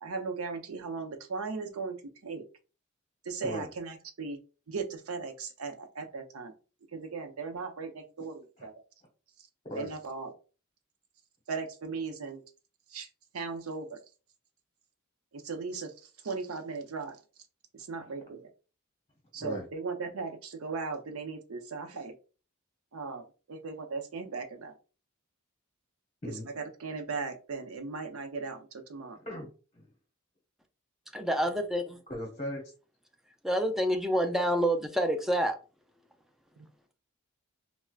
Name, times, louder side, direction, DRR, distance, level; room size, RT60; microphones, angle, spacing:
voice 1, 0.0-2.0 2.2-2.4 3.3-4.4 4.7-6.5 6.9-8.7 9.7-10.3 11.5-12.4 12.9-13.1 13.3-14.0 15.3-15.9 16.2-17.2 17.7-18.4 19.3-22.1 22.9-24.7 26.3-29.2 36.6-36.7, right 4 dB, 80° right, 5 dB, 0.6 m, -37 dB
voice 2, 31.1-32.0 33.4-35.6, equal, ahead, 4 dB, 0.4 m, -27 dB
voice 3, 32.1-32.6, left 1 dB, 30° left, 0 dB, 0.8 m, -37 dB
4.5 x 2.1 x 2.3 m, 0.35 s
head